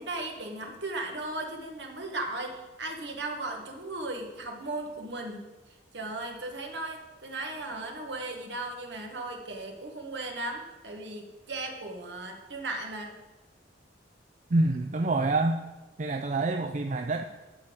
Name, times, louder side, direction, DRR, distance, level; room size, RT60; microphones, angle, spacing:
voice 1, 0.0-5.5 5.9-13.2, right 2 dB, 60° right, 2 dB, 1.7 m, -36 dB
voice 2, 14.5-15.6 16.0-17.2, right 2 dB, 40° right, 5 dB, 0.5 m, -26 dB
12.0 x 4.4 x 7.9 m, 1.1 s
head